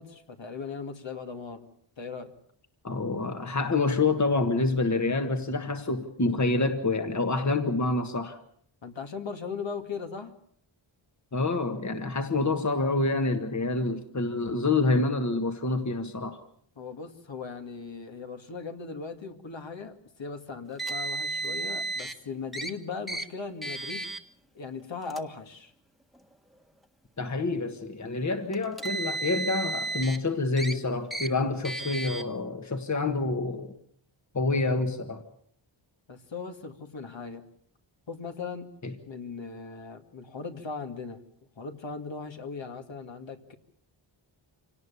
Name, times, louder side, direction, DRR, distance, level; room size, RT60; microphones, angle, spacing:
voice 1, 0.0-1.7 2.0-2.4 8.8-10.3 16.8-24.1 24.5-25.7 36.1-37.4 38.1-38.7 39.1-41.2 41.6-43.5, left 4 dB, 65° left, 5 dB, 2.3 m, -38 dB
voice 2, 2.8-8.4 11.3-16.4 27.2-33.8 34.3-35.2 38.8-38.9, left 3 dB, 35° left, 7 dB, 1.6 m, -27 dB
Car, 20.8-22.1 22.5-22.7 23.1-23.2 23.6-24.2 25.0-25.2 26.2-26.3 28.5-30.2 30.6-30.7 31.1-31.3 31.6-32.2, right 2 dB, ahead, 1.5 m, -33 dB
26.5 x 18.5 x 7.0 m, 0.65 s
wide cardioid pair, 105°, 49 cm